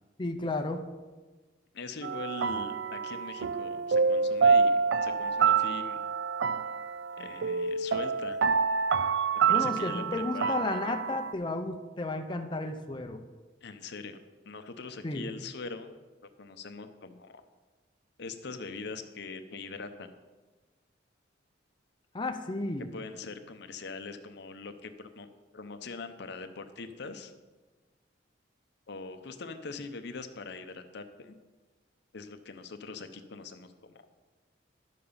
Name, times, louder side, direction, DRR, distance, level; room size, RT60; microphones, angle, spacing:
voice 1, 0.2-0.8 9.5-13.2 15.0-15.3 22.1-22.9, left 2 dB, 25° left, 5 dB, 0.6 m, -33 dB
voice 2, 1.7-6.0 7.2-8.4 9.5-10.8 13.6-15.9 16.4-17.4 18.2-20.1 22.9-25.3 25.5-27.3 28.9-31.4 32.1-34.0, left 4 dB, 60° left, 8 dB, 0.7 m, -42 dB
sound 1, 2.0-11.3, right 5 dB, 65° right, 0.4 m, -27 dB
11.5 x 6.8 x 5.5 m, 1.3 s
head